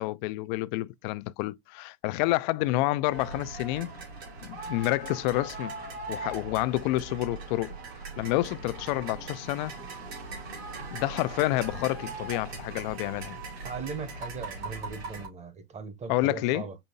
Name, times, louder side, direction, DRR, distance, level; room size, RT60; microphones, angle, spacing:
voice 1, 0.0-3.9 4.4-5.7 6.1-7.8 8.2-9.7 10.9-13.4 16.1-16.7, left 18 dB, 50° left, 0.4 m, -29 dB
sound 1, 3.1-15.3, right 3 dB, 90° right, 2.8 m, -40 dB
voice 2, 13.6-16.8, right 5 dB, 20° right, 0.8 m, -39 dB
5.4 x 2.7 x 2.7 m
hypercardioid pair, 105°, 30 cm